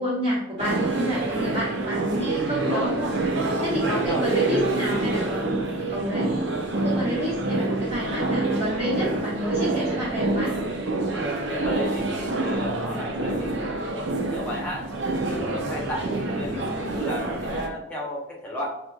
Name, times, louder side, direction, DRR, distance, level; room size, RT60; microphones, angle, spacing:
voice 1, 0.0-3.1 3.6-5.5 5.9-6.3 6.7-10.6 16.4-16.9, equal, 35° right, -9 dB, 1.2 m, -29 dB
sound 1, 0.6-17.7, right 2 dB, 60° right, 0.6 m, -27 dB
voice 2, 2.6-3.0 3.4-4.5 11.1-14.9 15.2-18.7, equal, 5° left, -4 dB, 0.9 m, -34 dB
4.2 x 2.6 x 2.3 m, 0.87 s
head